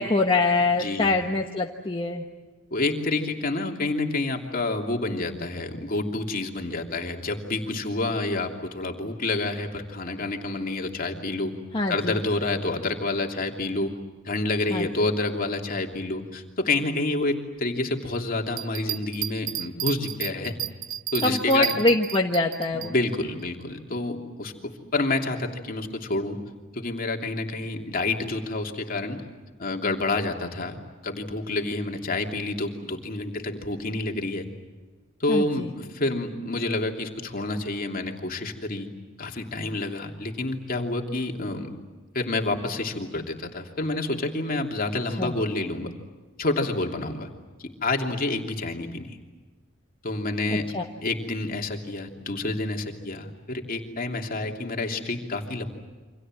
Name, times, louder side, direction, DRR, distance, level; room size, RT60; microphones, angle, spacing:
voice 1, 0.0-2.2 11.7-12.2 14.7-14.9 21.2-22.9 35.3-35.7 45.2-45.3 50.5-50.8, left 2 dB, 25° left, 1 dB, 1.3 m, -24 dB
voice 2, 0.8-1.1 2.7-11.5 11.9-13.9 14.2-20.5 21.1-21.7 22.7-26.4 26.7-29.2 29.6-34.5 35.2-38.9 39.2-41.7 42.1-45.9 46.4-47.3 47.6-49.2 50.0-50.7 51.0-55.7, left 2 dB, 45° left, 2 dB, 3.0 m, -28 dB
Bell, 18.5-22.9 23.4-23.5, right 12 dB, 75° right, 0.8 m, -32 dB
28.5 x 25.5 x 7.7 m, 1.3 s
head